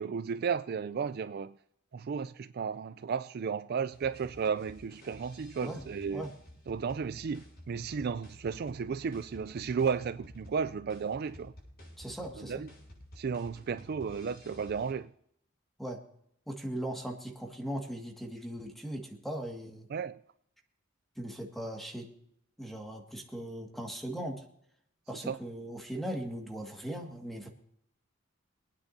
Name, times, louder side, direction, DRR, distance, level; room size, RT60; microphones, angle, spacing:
voice 1, 0.0-1.6 1.9-6.3 6.7-11.5 12.4-12.7 13.2-15.1 19.9-20.2 25.1-25.4, right 6 dB, 50° right, 0.4 m, -34 dB
sound 1, 3.9-14.9, equal, 55° left, 6.7 m, -53 dB
voice 2, 12.0-12.6 15.8-16.0 16.5-19.9 21.2-22.1 22.6-24.4 25.1-27.5, right 1 dB, ahead, 1.9 m, -39 dB
25.5 x 9.8 x 2.7 m
head